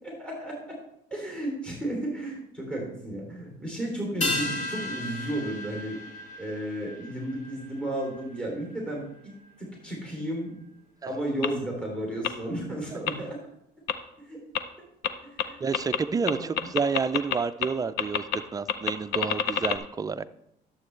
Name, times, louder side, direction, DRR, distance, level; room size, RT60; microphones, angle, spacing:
voice 1, 0.0-0.8 1.1-6.0 6.4-9.3 9.6-10.5 11.0-13.4 14.2-14.4 15.2-15.6 16.2-16.7, right 1 dB, 5° left, -1 dB, 2.9 m, -33 dB
sound 1, 4.2-8.9 9.2-9.3, left 2 dB, 45° left, 1.8 m, -35 dB
sound 2, 11.4-11.5 12.2-12.3 13.1-13.2 13.9-14.0 14.5-14.6 15.0-15.1 15.4-15.5 15.7-16.0 16.3-17.4 17.6-17.7 18.0-18.4 18.7-19.8, left 10 dB, 85° left, 0.6 m, -26 dB
voice 2, 15.6-18.2 18.5-20.2, right 5 dB, 20° right, 14 dB, 0.3 m, -29 dB
11.0 x 7.6 x 3.2 m, 0.78 s
cardioid pair, 110°, 17 cm